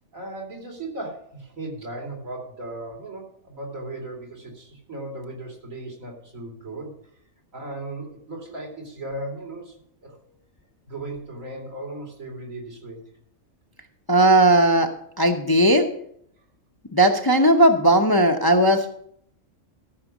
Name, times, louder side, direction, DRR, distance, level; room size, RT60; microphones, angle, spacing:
voice 1, 0.1-7.0 7.5-9.7 10.0-10.2 10.9-13.0, right 2 dB, 75° right, 0 dB, 3.1 m, -36 dB
voice 2, 14.1-14.9 15.2-15.9 16.9-18.9, right 1 dB, 20° left, 4 dB, 0.7 m, -17 dB
14.0 x 6.3 x 6.1 m, 0.67 s
omnidirectional pair, 1.4 m